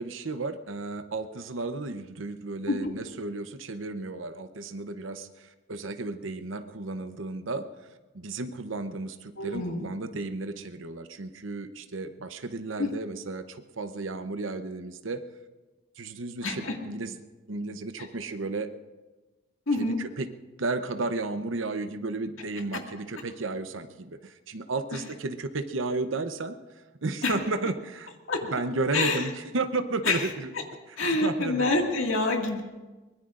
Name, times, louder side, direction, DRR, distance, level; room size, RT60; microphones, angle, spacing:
voice 1, 0.0-7.7 8.1-15.2 16.0-17.2 17.5-18.7 19.7-20.3 20.6-26.6 27.0-28.1 28.5-30.5 30.9-31.0 31.2-31.7, right 3 dB, 75° right, 8 dB, 0.8 m, -33 dB
voice 2, 9.4-9.8 12.8-12.9 16.4-16.8 19.7-20.0 22.7-22.8 27.2-27.4 28.3-28.4 28.9-29.2 30.1-30.2 31.0-32.6, left 3 dB, 85° left, 1 dB, 2.0 m, -26 dB
23.5 x 21.0 x 2.5 m, 1.2 s
head